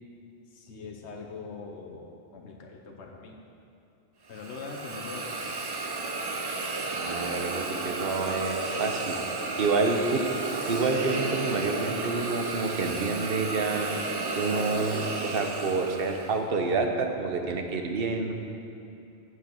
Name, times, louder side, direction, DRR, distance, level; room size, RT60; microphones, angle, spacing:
voice 1, 0.5-3.4 4.3-5.7, left 4 dB, 85° left, 1 dB, 1.1 m, -42 dB
Hiss, 4.3-16.4, right 3 dB, 35° right, 0.4 m, -33 dB
voice 2, 6.9-9.2 9.6-10.2 10.7-14.0 14.4-18.3, right 4 dB, 60° right, 4 dB, 1.0 m, -28 dB
8.1 x 7.6 x 6.1 m, 2.7 s
omnidirectional pair, 1.1 m